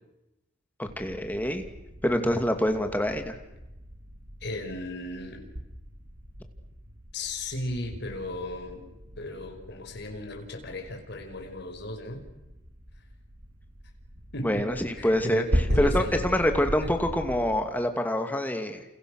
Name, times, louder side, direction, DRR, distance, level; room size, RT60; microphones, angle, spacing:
voice 1, 0.8-1.6 2.0-3.4 14.4-18.8, equal, 10° left, 6 dB, 2.5 m, -26 dB
sound 1, 0.9-17.6, equal, 70° right, 3.3 m, -37 dB
voice 2, 4.4-5.4 7.1-8.9 9.2-12.2 14.3-14.7 15.0-16.2 16.8-16.9, left 2 dB, 60° left, 3 dB, 5.2 m, -36 dB
29.0 x 29.0 x 6.6 m, 0.96 s
head